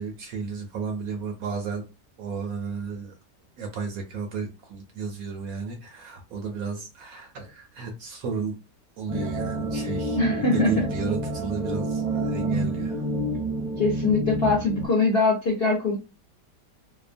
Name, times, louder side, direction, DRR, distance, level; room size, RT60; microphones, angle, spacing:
voice 1, 0.0-1.8 2.2-3.1 3.6-8.6 9.0-13.0, right 5 dB, 70° right, 4 dB, 0.9 m, -33 dB
sound 1, 9.1-14.9, right 1 dB, 35° right, 0.6 m, -28 dB
voice 2, 10.2-10.9 13.8-16.0, left 3 dB, 55° left, -3 dB, 0.6 m, -22 dB
2.8 x 2.1 x 2.5 m, 0.27 s
omnidirectional pair, 1.8 m